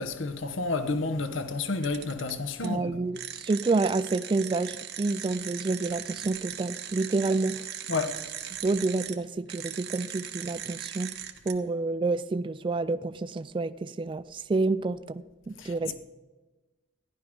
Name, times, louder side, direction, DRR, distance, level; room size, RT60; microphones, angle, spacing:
voice 1, 0.0-3.0 7.9-8.2 15.6-15.9, left 3 dB, 80° left, 0.9 m, -30 dB
sound 1, 1.8-2.3 2.6-2.7 3.1-9.1 9.5-11.5, right 10 dB, 55° right, 1.1 m, -39 dB
voice 2, 2.6-7.7 8.6-11.1 11.5-16.0, right 3 dB, 25° right, 0.3 m, -29 dB
15.0 x 11.5 x 5.2 m
head